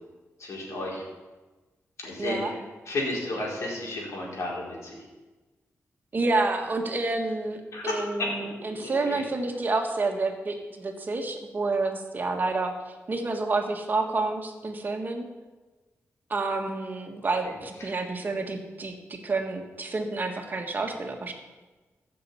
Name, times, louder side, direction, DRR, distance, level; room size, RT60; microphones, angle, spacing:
voice 1, 0.4-1.0 2.0-2.5 2.9-5.0 7.7-8.3 8.8-9.2, left 2 dB, 70° left, -3 dB, 4.6 m, -32 dB
voice 2, 2.2-2.5 6.1-15.3 16.3-21.3, right 3 dB, 35° right, 4 dB, 1.6 m, -29 dB
14.5 x 6.9 x 8.4 m, 1.2 s
wide cardioid pair, 140°, 5 cm